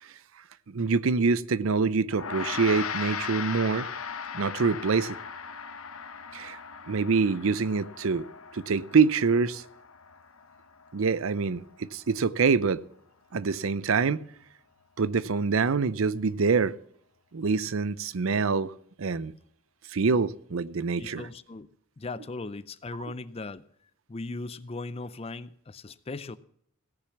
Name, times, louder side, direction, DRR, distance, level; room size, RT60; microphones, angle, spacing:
voice 1, 0.7-3.9 4.3-5.2 6.3-6.6 6.9-8.3 8.5-9.6 10.9-12.8 13.3-14.2 15.0-16.8 17.3-18.7 19.0-19.3 19.9-21.3, right 5 dB, 70° right, 0.6 m, -25 dB
Gong, 2.1-11.6, left 6 dB, 80° left, 0.9 m, -38 dB
voice 2, 21.0-21.7 22.0-23.6 24.1-26.4, left 3 dB, 30° left, 0.5 m, -38 dB
17.0 x 6.7 x 7.1 m
head